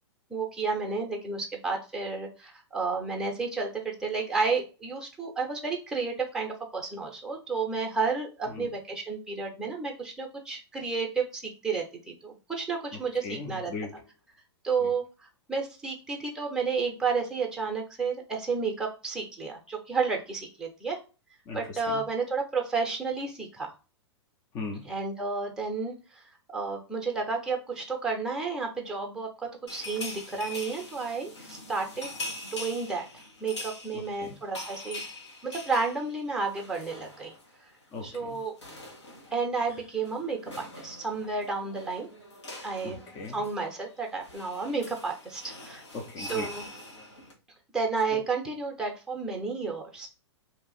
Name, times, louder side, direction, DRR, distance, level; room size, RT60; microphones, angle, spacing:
voice 1, 0.3-13.7 14.6-21.0 21.5-23.7 24.9-26.2 26.5-32.1 32.5-33.1 33.4-35.0 35.4-37.3 38.0-38.5 39.3-42.1 42.6-43.0 43.3-45.8 46.2-46.6 47.7-50.1, right 4 dB, 5° right, 0.7 m, -31 dB
voice 2, 12.9-14.0 14.8-14.9 21.5-22.1 24.5-24.9 33.9-34.4 37.9-38.4 42.8-43.4 45.9-46.6 48.1-48.2, left 4 dB, 30° left, 0.6 m, -39 dB
sound 1, 29.7-37.5 37.8-38.0 38.3-47.3, left 2 dB, 80° left, 1.2 m, -43 dB
2.8 x 2.4 x 4.1 m
figure-of-eight pair, 105°, 15 cm